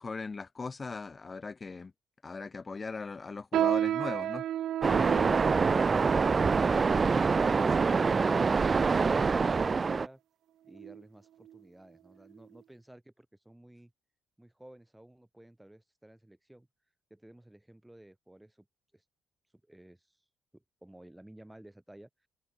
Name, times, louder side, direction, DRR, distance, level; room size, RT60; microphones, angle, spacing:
voice 1, 0.0-1.9 2.2-4.4, left 4 dB, 30° left, 1.7 m, -39 dB
sound 1, 3.5-9.2 9.9-10.0 10.7-11.0 11.4-11.6 12.3-12.4, right 12 dB, 75° right, 0.9 m, -34 dB
Waves surf, 4.8-10.1, right 4 dB, 35° right, 0.6 m, -25 dB
voice 2, 9.5-10.2 10.6-13.9 14.4-16.7 17.1-18.7 18.9-19.0 19.6-20.2 20.5-22.1, right 1 dB, 5° right, 7.0 m, -53 dB
cardioid pair, 90°, 0 cm